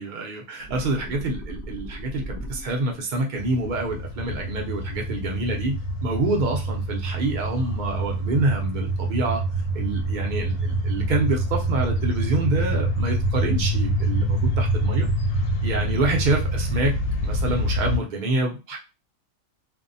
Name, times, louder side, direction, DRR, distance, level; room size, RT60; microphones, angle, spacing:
voice 1, 0.0-9.4 9.7-15.1 15.6-18.8, right 2 dB, 65° right, 1 dB, 0.4 m, -27 dB
sound 1, 0.6-3.1 4.0-5.0, equal, 60° left, 0.7 m, -38 dB
sound 2, 3.4-18.0, right 1 dB, 85° left, 1.1 m, -26 dB
2.6 x 2.1 x 2.6 m, 0.28 s
omnidirectional pair, 1.5 m